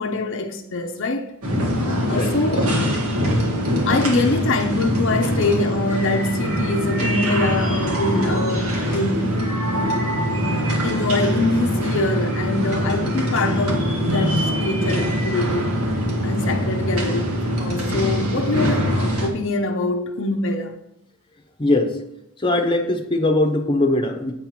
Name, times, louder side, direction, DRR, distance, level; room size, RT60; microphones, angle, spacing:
voice 1, 0.0-1.3 2.1-2.7 3.9-9.9 10.8-15.7 16.2-20.7, left 2 dB, 60° left, 0.7 m, -24 dB
sound 1, 1.4-19.3, equal, 85° right, 1.8 m, -23 dB
voice 2, 2.1-2.6 21.6-22.0 22.4-24.3, left 2 dB, 20° left, 0.9 m, -21 dB
8.9 x 4.5 x 5.8 m
head